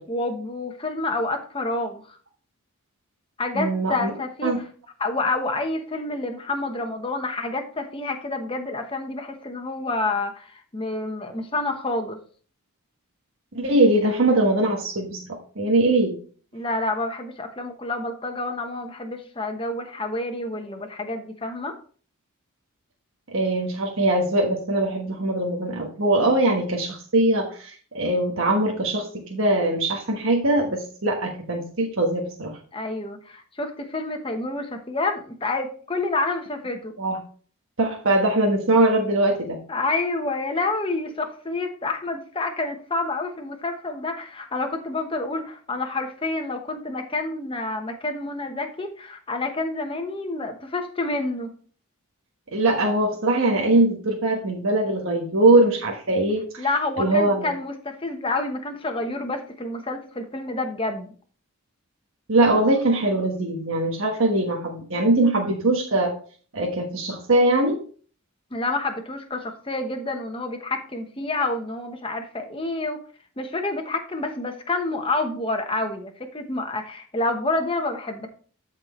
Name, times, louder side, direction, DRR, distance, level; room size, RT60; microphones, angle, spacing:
voice 1, 0.1-2.2 3.4-4.5 5.0-12.2 16.5-21.7 32.7-36.9 39.7-51.5 56.6-61.1 68.5-73.0 73.4-78.3, left 2 dB, 25° left, 5 dB, 1.0 m, -28 dB
voice 2, 3.5-4.1 4.4-4.6 13.5-16.2 23.3-32.6 37.0-37.2 37.8-39.6 52.5-56.7 57.0-57.5 62.3-66.1 66.5-67.8, right 2 dB, 65° right, -1 dB, 1.3 m, -21 dB
13.0 x 4.4 x 3.1 m, 0.43 s
head